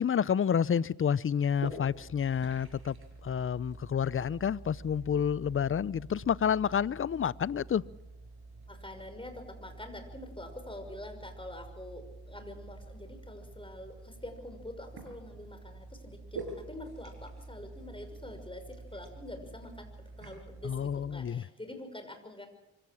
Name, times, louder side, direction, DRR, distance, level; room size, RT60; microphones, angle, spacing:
voice 1, 0.0-3.0 3.2-7.8 20.6-21.4, left 8 dB, 30° left, 0.6 m, -29 dB
sound 1, 1.5-21.2, right 3 dB, 55° right, 6.2 m, -47 dB
voice 2, 8.7-19.9 20.2-22.5, left 1 dB, 10° left, 6.2 m, -45 dB
25.0 x 17.0 x 6.2 m
supercardioid pair, 55°, 46 cm